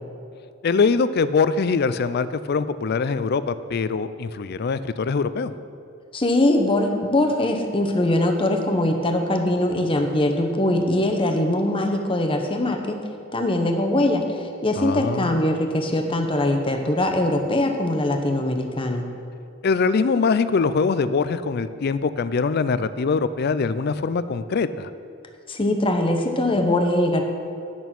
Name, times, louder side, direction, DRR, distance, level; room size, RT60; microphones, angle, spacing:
voice 1, 0.6-5.5 14.8-15.4 19.6-24.9, left 4 dB, 50° left, 14 dB, 0.4 m, -23 dB
voice 2, 6.1-13.0 13.3-19.1 25.5-27.2, left 1 dB, 25° left, 4 dB, 0.9 m, -22 dB
10.5 x 6.9 x 6.0 m, 2.5 s
head